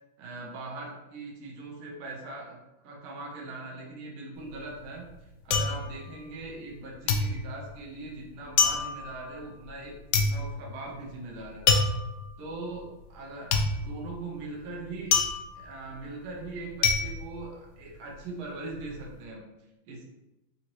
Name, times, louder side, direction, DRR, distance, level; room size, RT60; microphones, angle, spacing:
voice 1, 0.2-2.6 2.8-11.7 12.4-15.2 15.5-19.4 19.9-20.1, right 2 dB, 75° right, -1 dB, 1.6 m, -41 dB
sound 1, 4.4-6.8 7.1-18.2 18.5-19.1, left 5 dB, 90° left, 0.9 m, -28 dB
4.2 x 2.7 x 2.9 m, 0.95 s
omnidirectional pair, 2.4 m